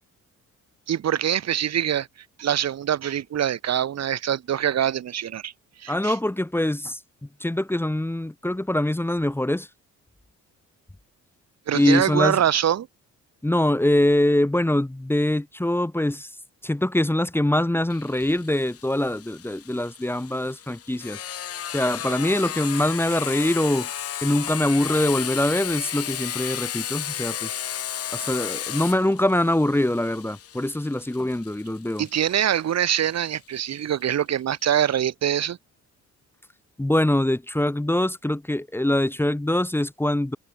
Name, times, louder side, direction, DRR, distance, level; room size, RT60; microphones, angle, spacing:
voice 1, 0.9-2.1 2.4-5.5 5.8-6.1 11.7-12.9 32.0-35.6, right 10 dB, 60° right, 1.8 m, -24 dB
voice 2, 5.9-7.0 7.4-9.7 11.7-12.4 13.4-16.3 16.6-21.2 21.7-23.9 24.2-27.5 28.1-32.0 36.8-40.4, left 1 dB, 5° left, 1.6 m, -23 dB
Sawing, 17.9-33.3, left 10 dB, 50° left, 1.0 m, -34 dB
cardioid pair, 90°, 30 cm